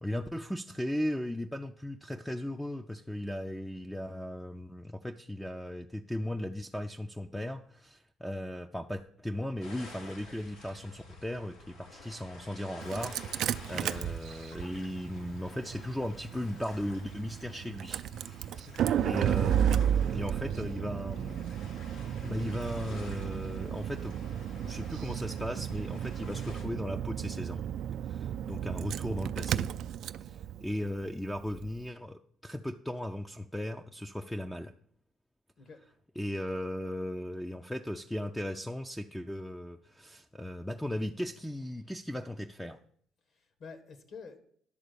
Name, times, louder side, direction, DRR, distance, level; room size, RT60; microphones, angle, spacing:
voice 1, 0.0-18.5 19.0-21.5 22.2-24.1 24.6-27.6 28.0-29.7 30.2-34.7 36.2-42.8, left 1 dB, 5° left, 5 dB, 0.4 m, -37 dB
sound 1, 9.6-26.6, left 2 dB, 85° left, 2.9 m, -51 dB
Engine starting, 12.8-31.8, right 9 dB, 65° right, 0.4 m, -33 dB
voice 2, 43.3-44.4, left 5 dB, 55° left, 8 dB, 1.6 m, -48 dB
11.0 x 3.9 x 6.8 m, 0.64 s
cardioid pair, 100°, 0 cm